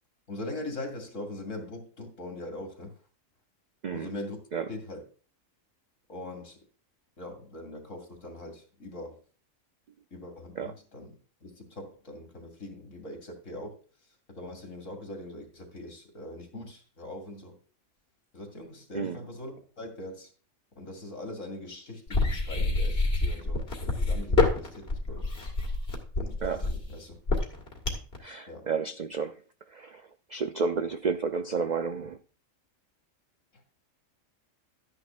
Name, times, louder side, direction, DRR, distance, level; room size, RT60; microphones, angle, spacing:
voice 1, 0.3-2.9 3.9-4.4 4.7-5.1 6.1-6.6 7.2-9.2 10.1-13.8 14.3-17.5 18.3-20.3 20.8-23.6 23.9-25.3 26.2-27.2 28.5-28.7, left 1 dB, 65° left, 2.6 m, -41 dB
sound 1, 22.1-28.2, left 3 dB, 50° left, 2.1 m, -26 dB
voice 2, 28.2-29.4 29.7-30.0 30.3-32.2, right 5 dB, 70° right, 0.4 m, -31 dB
12.5 x 9.9 x 2.4 m
omnidirectional pair, 1.4 m